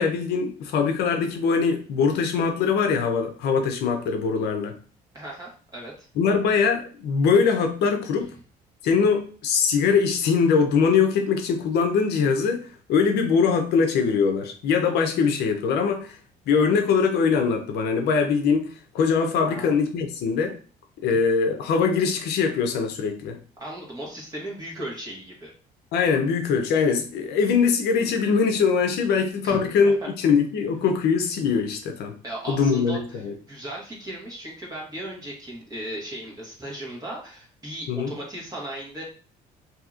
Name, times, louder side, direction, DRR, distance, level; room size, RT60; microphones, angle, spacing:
voice 1, 0.0-4.7 6.2-8.3 8.8-16.2 16.5-20.6 21.0-23.4 25.9-32.2 32.5-33.3 37.9-38.1, left 5 dB, 75° left, 5 dB, 0.6 m, -22 dB
voice 2, 5.1-6.1 19.4-19.7 23.6-25.5 29.4-29.9 32.2-33.0 33.5-39.0, right 1 dB, 20° right, -3 dB, 1.3 m, -36 dB
2.8 x 2.7 x 2.4 m, 0.39 s
cardioid pair, 110°, 17 cm